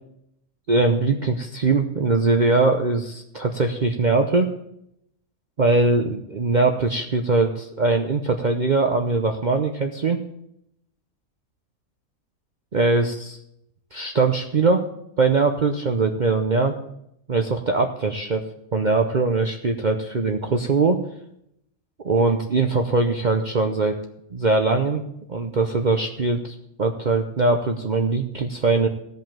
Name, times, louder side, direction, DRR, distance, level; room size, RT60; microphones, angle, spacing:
voice 1, 0.7-4.5 5.6-10.2 12.7-13.4 13.9-14.9 15.2-16.8 17.3-18.4 18.7-21.0 22.0-24.0 24.3-25.0 25.3-28.9, right 3 dB, 40° right, 4 dB, 0.7 m, -21 dB
15.5 x 5.5 x 7.4 m, 0.77 s
omnidirectional pair, 1.5 m